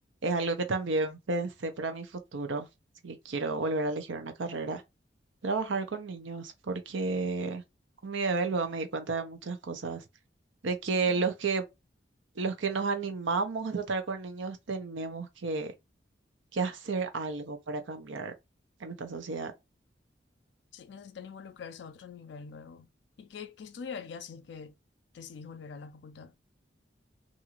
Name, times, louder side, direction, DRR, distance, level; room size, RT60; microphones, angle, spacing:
voice 1, 0.2-2.7 3.0-4.8 5.4-7.6 8.0-10.0 10.6-11.6 12.4-15.7 16.5-18.3 18.8-19.5, right 3 dB, 90° right, 0.6 m, -32 dB
voice 2, 20.7-22.9 23.2-24.8 25.1-26.3, left 6 dB, 65° left, 0.3 m, -44 dB
2.6 x 2.4 x 2.9 m
head